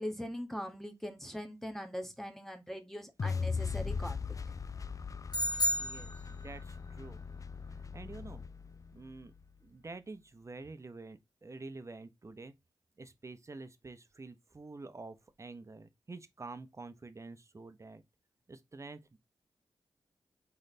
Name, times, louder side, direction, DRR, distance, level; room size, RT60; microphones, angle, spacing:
voice 1, 0.0-4.2, equal, 5° left, 1.1 m, -41 dB
sound 1, 3.2-9.4, left 5 dB, 35° left, 0.3 m, -39 dB
sound 2, 5.3-6.8, left 1 dB, 55° left, 2.0 m, -32 dB
voice 2, 5.8-6.1 6.4-6.6 7.0-7.2 7.7-8.4 8.9-9.3 9.7-12.5 13.0-18.0 18.5-19.2, right 3 dB, 35° right, 0.7 m, -48 dB
3.9 x 3.3 x 4.1 m
cardioid pair, 55°, 9 cm